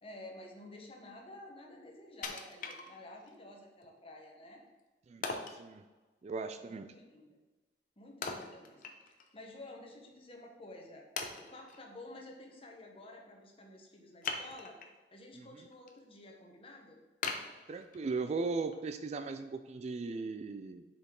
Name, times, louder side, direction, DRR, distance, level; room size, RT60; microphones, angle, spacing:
voice 1, 0.0-4.6 6.6-7.4 8.0-11.1 11.4-14.8 15.1-17.0, left 1 dB, 35° left, 1 dB, 1.1 m, -51 dB
Wood, 2.2-3.3 3.8-3.9 5.2-5.6 8.2-9.3 9.7-9.8 10.4-10.5 11.2-11.8 14.2-15.0 15.5-15.9 16.3-16.4 17.2-18.2 18.7-18.8, left 4 dB, 50° left, 0.7 m, -40 dB
voice 2, 6.2-6.9 15.3-15.5 17.7-20.9, right 4 dB, 40° right, 9 dB, 0.3 m, -37 dB
6.6 x 5.1 x 3.8 m, 1.2 s
head